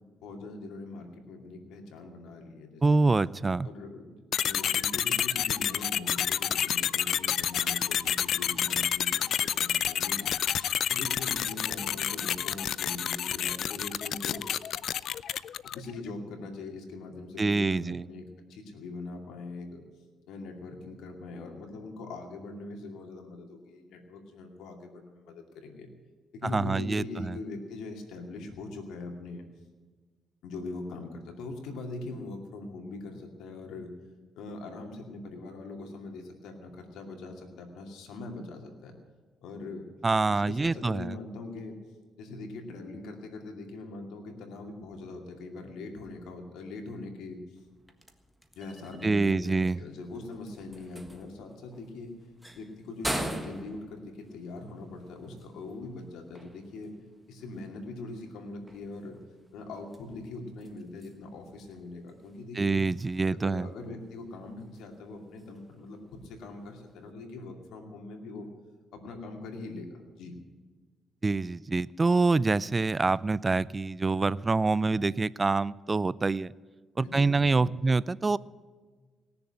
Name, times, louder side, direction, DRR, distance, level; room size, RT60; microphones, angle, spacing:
voice 1, 0.2-3.0 3.6-10.3 10.9-14.5 15.7-19.8 20.3-25.9 26.3-29.5 30.4-33.9 34.4-39.0 39.4-39.9 40.3-41.8 42.2-47.6 48.6-52.1 52.5-56.9 57.3-59.2 59.5-62.8 63.3-68.5 68.9-70.3 77.0-77.7, left 2 dB, 85° left, 3 dB, 2.4 m, -42 dB
voice 2, 2.8-3.7 17.4-18.1 26.4-27.4 40.0-41.2 49.0-49.8 62.6-63.7 71.2-76.5 77.0-78.4, right 3 dB, 25° right, 20 dB, 0.4 m, -26 dB
sound 1, 4.3-15.9, left 10 dB, 65° left, 0.4 m, -29 dB
sound 2, 47.6-67.1, right 1 dB, 5° right, 1.5 m, -44 dB
18.5 x 7.0 x 9.9 m, 1.4 s
cardioid pair, 90°, 0 cm